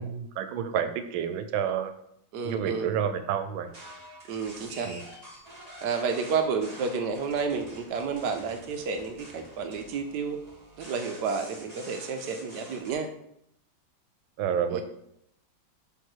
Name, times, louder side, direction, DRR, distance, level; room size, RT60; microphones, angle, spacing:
voice 1, 0.0-1.9 2.4-3.7 4.8-5.0 14.4-14.8, right 8 dB, 85° right, 9 dB, 1.4 m, -29 dB
voice 2, 2.3-2.9 4.3-4.9 5.8-10.4 10.8-13.1 14.7-14.8, right 5 dB, 70° right, 6 dB, 1.1 m, -30 dB
sound 1, 3.7-12.9, right 1 dB, 20° right, 1.5 m, -47 dB
6.8 x 3.3 x 4.5 m, 0.75 s
omnidirectional pair, 2.1 m